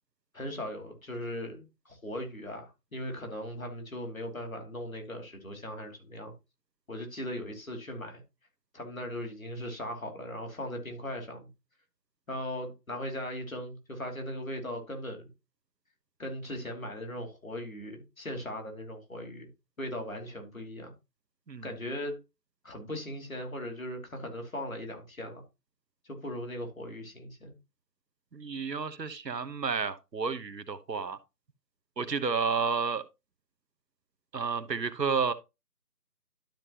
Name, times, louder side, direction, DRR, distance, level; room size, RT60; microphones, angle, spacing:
voice 1, 0.3-6.3 6.9-8.2 8.7-11.5 12.3-15.3 16.2-19.5 19.8-20.9 21.6-22.2 22.6-25.4 26.0-27.5, left 1 dB, 55° left, 2.9 m, -38 dB
voice 2, 28.3-31.2 32.0-33.0 34.3-35.3, right 5 dB, 85° right, 1.2 m, -31 dB
12.0 x 5.3 x 2.9 m
figure-of-eight pair, 180°, 48 cm